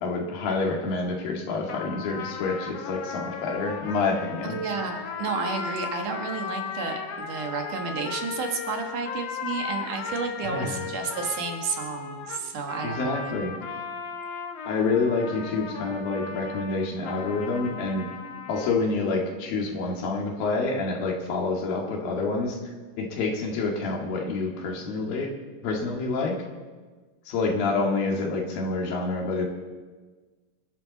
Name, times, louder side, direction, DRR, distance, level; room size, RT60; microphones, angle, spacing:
voice 1, 0.0-4.6 10.4-10.8 12.8-13.5 14.7-18.1 18.5-22.6 23.0-25.3 25.6-26.4 27.3-29.5, left 3 dB, 85° left, 0 dB, 3.9 m, -27 dB
sound 1, 1.7-18.8, left 6 dB, 60° left, 1.9 m, -36 dB
voice 2, 4.4-13.4, right 5 dB, 65° right, 3 dB, 3.0 m, -31 dB
25.5 x 11.5 x 4.1 m, 1.4 s
omnidirectional pair, 4.1 m